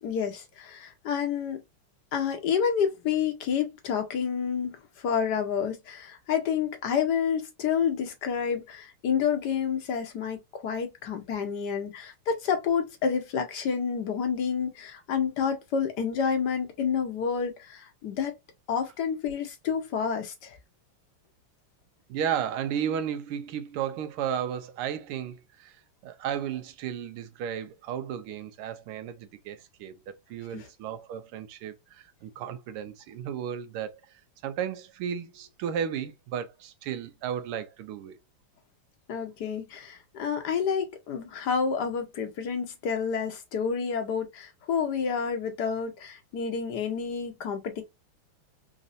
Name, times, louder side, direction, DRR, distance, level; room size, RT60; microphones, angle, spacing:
voice 1, 0.0-1.6 2.1-4.8 5.0-18.3 18.7-20.6 30.5-30.7 39.1-47.8, left 7 dB, 60° left, 1.2 m, -29 dB
voice 2, 22.1-38.2, right 9 dB, 90° right, 1.5 m, -34 dB
4.1 x 2.6 x 2.5 m
omnidirectional pair, 2.4 m